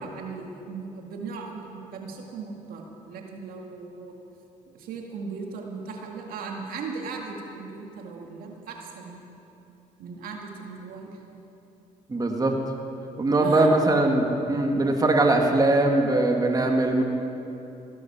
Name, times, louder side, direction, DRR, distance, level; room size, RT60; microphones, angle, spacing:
voice 1, 0.0-4.1 4.7-9.2 10.0-11.2 13.3-13.7, right 4 dB, 75° right, 1 dB, 1.8 m, -37 dB
voice 2, 12.1-12.5 13.2-17.0, right 2 dB, 25° right, 3 dB, 1.7 m, -21 dB
17.5 x 12.0 x 5.9 m, 2.9 s
cardioid pair, 75°, 15 cm